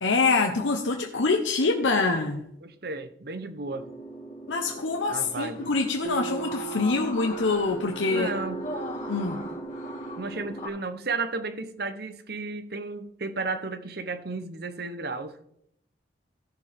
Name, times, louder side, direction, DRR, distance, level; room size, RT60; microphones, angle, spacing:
voice 1, 0.0-2.4 4.5-8.3 9.1-9.5, left 3 dB, 90° left, 3 dB, 0.9 m, -25 dB
voice 2, 2.6-3.9 5.1-5.7 8.1-8.7 10.2-15.4, right 3 dB, 55° right, 10 dB, 0.9 m, -33 dB
sound 1, 3.6-10.7, equal, 40° left, 2.6 m, -38 dB
Acoustic guitar, 6.0-9.6, right 10 dB, 80° right, 2.1 m, -40 dB
16.5 x 6.8 x 3.6 m, 0.73 s
head